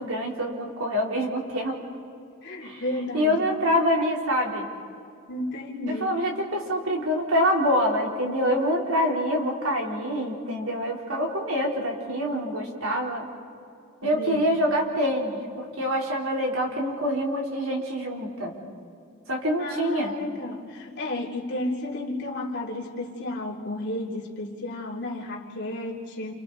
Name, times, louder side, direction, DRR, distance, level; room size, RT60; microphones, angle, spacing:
voice 1, 0.0-1.8 2.6-2.8 3.1-4.7 5.9-13.3 14.0-18.5 19.3-20.1, equal, 75° right, -1 dB, 3.9 m, -26 dB
voice 2, 2.4-3.4 5.3-6.1 14.1-14.4 19.6-26.3, left 1 dB, 55° left, -4 dB, 3.3 m, -32 dB
30.0 x 29.0 x 4.1 m, 2.5 s
head